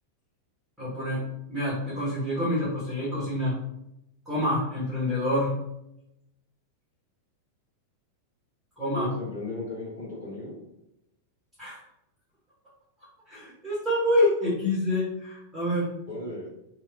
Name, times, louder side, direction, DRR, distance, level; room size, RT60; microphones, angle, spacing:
voice 1, 0.8-1.2 1.5-3.5 4.3-5.5 8.8-9.1 11.6-11.8 13.3-15.9, left 1 dB, ahead, -10 dB, 1.2 m, -27 dB
voice 2, 8.9-10.6 16.1-16.5, left 1 dB, 70° left, -4 dB, 1.1 m, -35 dB
2.8 x 2.2 x 2.4 m, 0.86 s
figure-of-eight pair, 90°, 0 cm